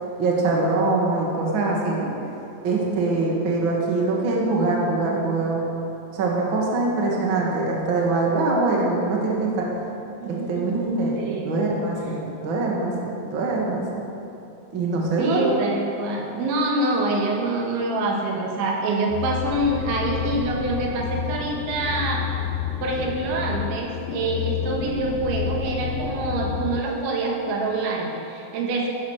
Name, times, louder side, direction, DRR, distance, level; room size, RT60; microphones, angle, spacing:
voice 1, 0.2-2.1 2.6-5.7 6.1-9.7 10.3-11.2 11.4-14.0 14.7-15.5, right 3 dB, 35° right, -2 dB, 2.1 m, -23 dB
voice 2, 10.2-10.7 11.1-11.5 12.0-12.3 15.2-22.3 22.8-28.9, right 2 dB, 85° right, -1 dB, 4.2 m, -26 dB
sound 1, 19.1-26.8, left 9 dB, 85° left, 2.2 m, -30 dB
14.5 x 11.0 x 6.7 m, 2.8 s
omnidirectional pair, 5.1 m